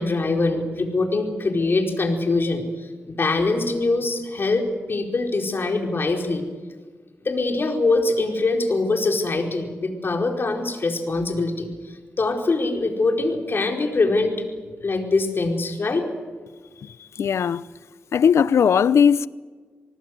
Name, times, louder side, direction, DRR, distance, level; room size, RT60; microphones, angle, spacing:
voice 1, 0.0-2.6 3.1-6.5 7.2-11.7 12.2-14.4 14.8-16.1, left 3 dB, 50° left, 4.9 m, -23 dB
voice 2, 16.8-17.6 18.1-19.3, left 7 dB, 75° left, 0.7 m, -18 dB
25.5 x 19.5 x 8.0 m
cardioid pair, 45°, 5 cm